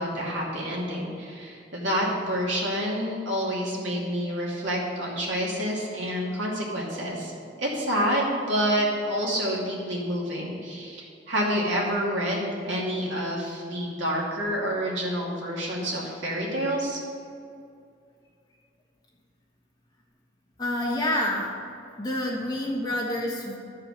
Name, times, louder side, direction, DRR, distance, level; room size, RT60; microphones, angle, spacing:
voice 1, 0.0-7.3 7.6-17.0, equal, 75° right, -4 dB, 2.5 m, -28 dB
voice 2, 20.6-21.5 22.0-23.6, left 1 dB, 20° left, -3 dB, 1.4 m, -28 dB
12.5 x 4.9 x 6.4 m, 2.4 s
head